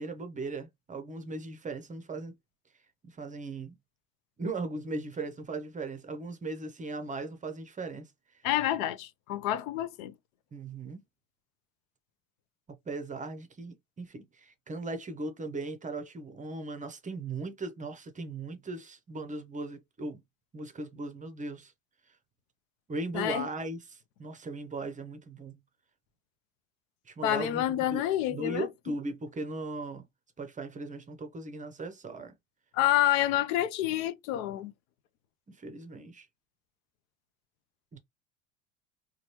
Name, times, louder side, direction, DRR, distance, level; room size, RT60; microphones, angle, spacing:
voice 1, 0.0-2.3 3.0-3.8 4.4-8.1 10.5-11.0 12.9-20.2 20.5-21.7 22.9-25.5 27.1-28.0 28.3-30.1 30.4-32.3 35.5-36.3 37.9-38.0, right 2 dB, 20° right, 0.5 m, -38 dB
voice 2, 8.4-10.1 23.1-23.5 27.2-28.7 32.7-34.7, left 13 dB, 75° left, 0.5 m, -28 dB
3.0 x 2.3 x 2.9 m
hypercardioid pair, 80°, 41 cm